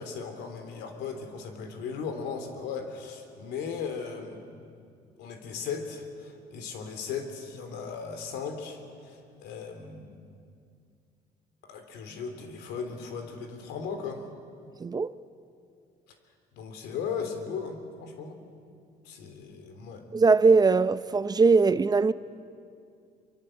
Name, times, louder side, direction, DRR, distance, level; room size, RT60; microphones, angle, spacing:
voice 1, 0.0-4.6 5.2-10.2 11.6-14.2 16.5-18.4 19.0-20.0, left 6 dB, 85° left, 3.4 m, -37 dB
voice 2, 14.8-15.1 20.1-22.1, right 4 dB, 25° right, 0.6 m, -21 dB
24.5 x 24.5 x 7.8 m
cardioid pair, 110°, 17 cm